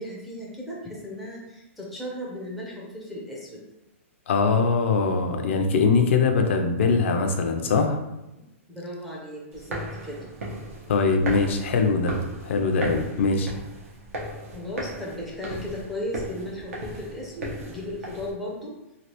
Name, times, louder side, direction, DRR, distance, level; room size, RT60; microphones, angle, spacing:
voice 1, 0.0-3.6 8.7-10.3 14.5-18.8, left 1 dB, ahead, -5 dB, 0.4 m, -36 dB
voice 2, 4.3-8.0 10.9-12.2 12.4-13.5, left 4 dB, 60° left, 4 dB, 0.4 m, -22 dB
sound 1, 9.5-18.3, right 1 dB, 90° right, 0.9 m, -36 dB
3.2 x 2.4 x 2.8 m, 0.93 s
hypercardioid pair, 170°, 7 cm